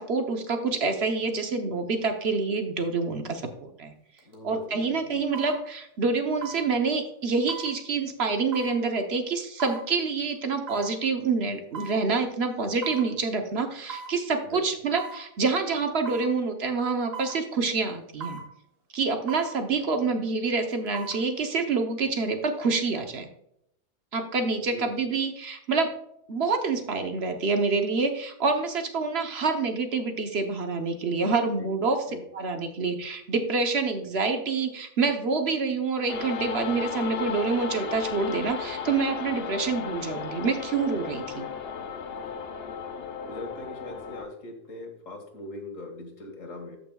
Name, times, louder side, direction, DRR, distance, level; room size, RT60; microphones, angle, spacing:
voice 1, 0.0-3.9 4.4-18.4 18.9-23.3 24.1-25.9 26.3-32.1 32.3-41.5, right 4 dB, 55° right, 5 dB, 1.1 m, -27 dB
sound 1, 4.2-4.3 5.3-5.6 6.4-6.7 7.5-7.7 8.5-8.8 9.6-9.8 10.7-10.9 11.7-12.0 12.8-13.1 13.9-14.2 15.0-15.2 16.0-16.3 17.1-17.4 18.2-18.5 19.3-19.5 20.7-21.2 21.6-21.7, right 5 dB, 85° right, 2.1 m, -38 dB
voice 2, 4.3-5.3 14.4-14.6 24.7-24.9 31.6-31.7 32.1-32.2 42.2-42.3 43.2-46.8, left 2 dB, 75° left, 3 dB, 2.2 m, -41 dB
sound 2, 36.1-44.2, left 6 dB, 55° left, 0.9 m, -35 dB
13.5 x 5.9 x 2.3 m, 0.75 s
omnidirectional pair, 1.4 m